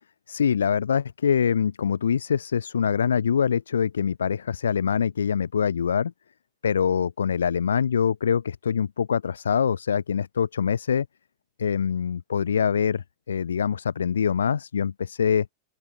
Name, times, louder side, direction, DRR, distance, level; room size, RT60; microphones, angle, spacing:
voice 1, 0.3-6.1 6.6-11.1 11.6-15.5, left 7 dB, 70° left, 2.0 m, -24 dB
open air
figure-of-eight pair, 90°, 0 cm